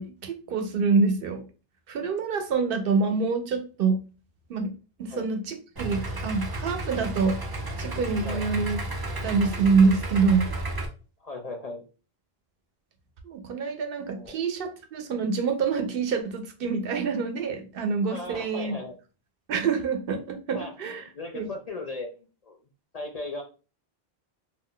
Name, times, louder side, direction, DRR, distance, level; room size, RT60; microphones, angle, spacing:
voice 1, 0.0-1.4 1.9-4.0 4.5-4.7 5.0-7.4 7.8-8.8 9.2-10.5 13.2-18.7 19.5-21.0 21.3-21.5, right 4 dB, 65° right, 6 dB, 0.7 m, -26 dB
Idling, 5.8-10.9, right 1 dB, 35° right, 0.3 m, -33 dB
voice 2, 11.2-11.8 14.1-14.4 18.1-18.9 20.5-20.7 21.0-22.6 22.9-23.4, left 2 dB, 50° left, 3 dB, 0.5 m, -37 dB
2.4 x 2.1 x 3.6 m, 0.34 s
omnidirectional pair, 1.1 m